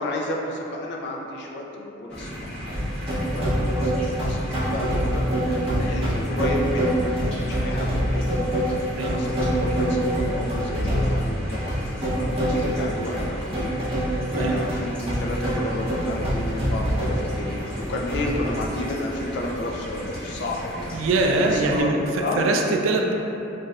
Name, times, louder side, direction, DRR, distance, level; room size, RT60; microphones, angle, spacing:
voice 1, 0.0-2.8 3.3-13.8 14.0-21.0 21.4-21.9 22.2-22.5, left 1 dB, 60° left, -1 dB, 0.4 m, -32 dB
sound 1, 2.1-21.8, equal, 5° left, 0.7 m, -36 dB
sound 2, 2.7-18.6, equal, 30° right, 0.7 m, -25 dB
voice 2, 14.3-14.6 20.9-23.1, right 2 dB, 85° right, 2 dB, 0.3 m, -23 dB
3.2 x 2.6 x 2.3 m, 2.8 s
head